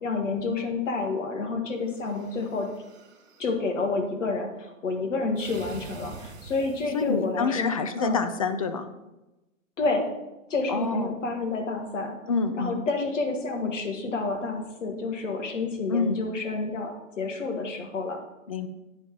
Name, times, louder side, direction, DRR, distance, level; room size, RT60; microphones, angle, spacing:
voice 1, 0.0-2.7 3.4-7.7 8.0-8.2 9.8-10.1 10.5-12.2 12.6-18.2, left 3 dB, 65° left, 3 dB, 1.7 m, -29 dB
sound 1, 1.8-3.5 5.4-7.3, right 5 dB, 55° right, 2.4 m, -46 dB
voice 2, 6.9-8.9 10.7-11.1 12.3-12.8 15.9-16.2 18.5-18.7, left 4 dB, 30° left, 9 dB, 0.4 m, -27 dB
9.4 x 4.5 x 5.2 m, 1.0 s
figure-of-eight pair, 125°, 40 cm